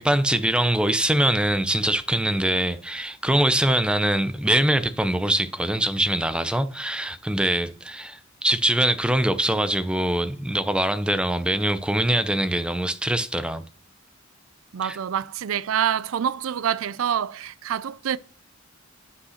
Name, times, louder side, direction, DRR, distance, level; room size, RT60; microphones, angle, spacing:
voice 1, 0.0-13.6 14.8-15.0, right 1 dB, 5° right, 0.5 m, -23 dB
voice 2, 14.7-18.2, right 9 dB, 75° right, 0.4 m, -26 dB
8.5 x 5.3 x 6.4 m
head